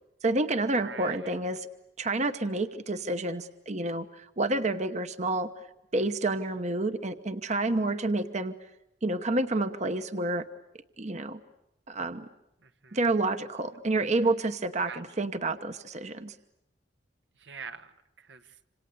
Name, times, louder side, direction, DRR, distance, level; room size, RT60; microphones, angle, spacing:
voice 1, 0.2-1.6 2.0-5.5 5.9-8.5 9.0-10.4 11.0-11.4 11.9-12.3 12.9-16.3, right 2 dB, 40° right, 9 dB, 1.0 m, -29 dB
voice 2, 0.8-1.3 12.6-13.0 14.9-15.0 17.4-18.6, right 6 dB, 80° right, 8 dB, 1.4 m, -44 dB
27.0 x 27.0 x 8.3 m, 0.87 s
head